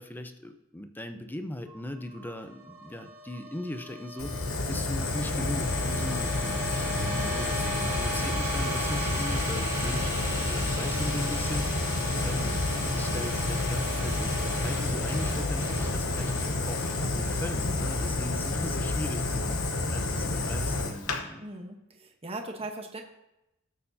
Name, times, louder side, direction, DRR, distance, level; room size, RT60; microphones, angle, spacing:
voice 1, 0.0-4.3 4.7-7.7 7.9-11.7 12.2-19.6 19.9-21.4, left 1 dB, 10° left, 7 dB, 0.6 m, -39 dB
sound 1, 1.7-20.0, right 1 dB, 10° right, 1.9 m, -38 dB
Fire, 4.2-21.2, left 2 dB, 70° left, 1.1 m, -29 dB
voice 2, 21.4-23.0, right 2 dB, 25° right, 3 dB, 1.1 m, -39 dB
18.0 x 6.7 x 2.8 m, 0.91 s
head